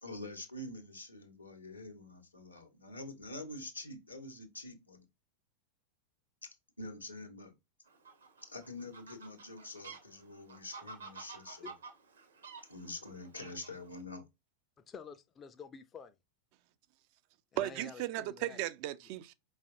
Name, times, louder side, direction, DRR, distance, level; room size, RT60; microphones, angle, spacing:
voice 1, 0.0-5.0 6.4-7.5 8.4-11.7 12.7-14.2, left 2 dB, 85° left, 1.3 m, -46 dB
Fowl, 7.9-14.0, right 4 dB, 70° right, 1.0 m, -51 dB
voice 2, 14.8-16.2 17.5-18.6, left 6 dB, 25° left, 0.5 m, -50 dB
voice 3, 17.6-19.3, right 15 dB, 45° right, 0.4 m, -36 dB
5.2 x 3.2 x 2.7 m
figure-of-eight pair, 90°, 0 cm